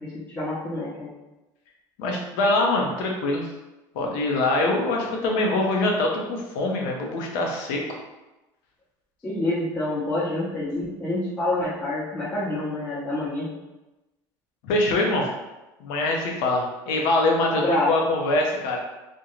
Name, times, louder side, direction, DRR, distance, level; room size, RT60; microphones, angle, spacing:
voice 1, 0.0-1.1 9.2-13.5 17.6-17.9, left 1 dB, 15° left, -11 dB, 0.8 m, -27 dB
voice 2, 2.0-3.4 3.9-7.8 14.6-15.3 15.8-18.8, left 2 dB, 80° left, 0 dB, 0.6 m, -24 dB
2.5 x 2.1 x 3.0 m, 1.0 s
supercardioid pair, 110°, 11 cm